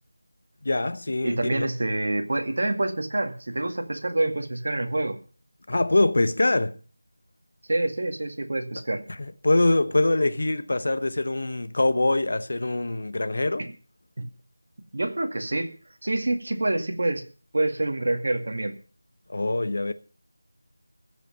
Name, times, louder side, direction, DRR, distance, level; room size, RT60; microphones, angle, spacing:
voice 1, 0.6-1.7 5.7-6.8 9.2-13.6 19.3-19.9, left 2 dB, 45° left, 1.0 m, -24 dB
voice 2, 1.2-5.2 7.7-9.0 13.6-13.7 14.2-14.3 14.9-15.7 16.0-17.3 17.5-18.8, right 2 dB, 45° right, 2.1 m, -27 dB
15.5 x 5.8 x 9.4 m
figure-of-eight pair, 180°, 0 cm